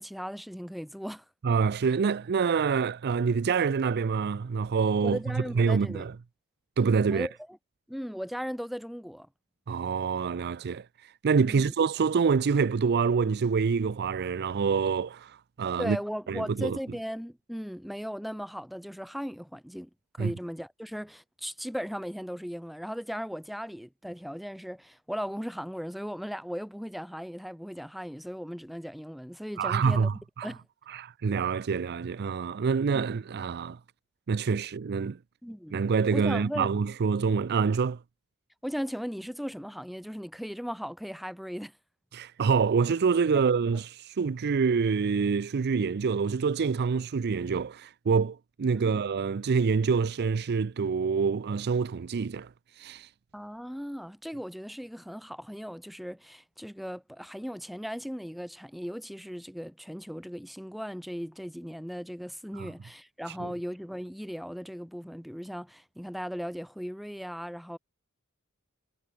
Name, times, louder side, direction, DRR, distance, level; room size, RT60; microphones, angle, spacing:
voice 1, 0.0-1.2 5.0-6.1 7.1-7.6 7.9-9.3 11.5-11.7 15.8-30.6 35.4-35.8 36.1-36.7 38.6-41.7 43.6-43.8 48.8-49.0 53.3-67.8, equal, ahead, 1.7 m, -37 dB
voice 2, 1.4-5.2 5.6-6.1 6.8-7.3 9.7-16.0 16.3-16.8 20.2-20.3 29.6-30.5 30.9-33.8 34.3-35.2 35.7-38.0 42.1-52.5 52.8-53.1 62.6-62.7 63.4-63.5, right 5 dB, 50° right, 0.4 m, -26 dB
head